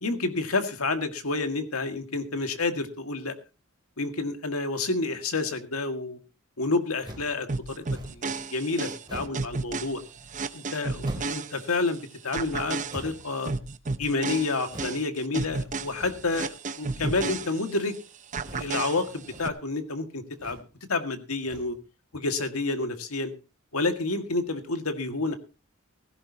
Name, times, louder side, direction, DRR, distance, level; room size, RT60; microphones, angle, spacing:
voice 1, 0.0-3.3 4.0-6.2 6.6-7.9 8.1-10.0 10.5-13.5 14.0-17.9 18.5-20.6 20.9-21.8 22.1-23.3 23.7-25.4, left 3 dB, 80° left, 8 dB, 1.9 m, -29 dB
sound 1, 7.0-7.4 7.9-8.3 9.0-9.5 11.0-11.5 12.9-13.4 14.7-15.0 15.9-16.4 17.2-17.5 18.4-18.8 19.2-19.6 20.3-20.7 21.4-21.8, right 1 dB, 20° right, 2.8 m, -43 dB
sound 2, 7.5-12.0 12.3-18.0 18.3-19.5, right 3 dB, 35° right, 0.8 m, -33 dB
16.5 x 15.5 x 2.8 m, 0.30 s
head